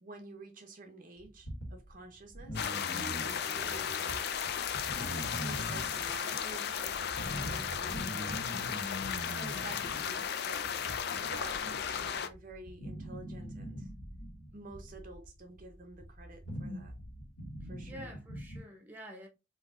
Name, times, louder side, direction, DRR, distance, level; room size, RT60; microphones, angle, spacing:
voice 1, 0.0-2.7 3.0-4.3 5.3-8.5 9.3-10.8 11.2-13.9 14.5-17.0 17.6-18.2, right 3 dB, 40° right, 0.6 m, -50 dB
sound 1, 1.2-3.8 4.1-18.6, equal, 85° left, 2.1 m, -43 dB
sound 2, 2.5-12.3, left 8 dB, 50° left, 0.4 m, -35 dB
sound 3, 2.5-5.7, right 2 dB, 20° left, 1.1 m, -49 dB
voice 2, 7.9-8.4 17.9-19.3, equal, 10° right, 0.7 m, -49 dB
4.4 x 3.1 x 2.4 m
head